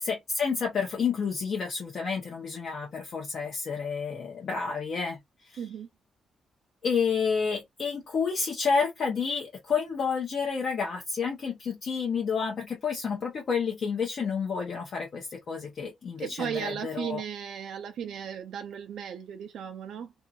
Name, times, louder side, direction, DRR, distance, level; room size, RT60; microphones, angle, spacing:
voice 1, 0.0-5.2 5.5-5.6 6.8-17.2, left 5 dB, 50° left, 0.8 m, -30 dB
voice 2, 5.6-5.9 16.2-20.1, right 8 dB, 75° right, 0.4 m, -36 dB
2.6 x 2.4 x 2.7 m
cardioid pair, 155°, 0 cm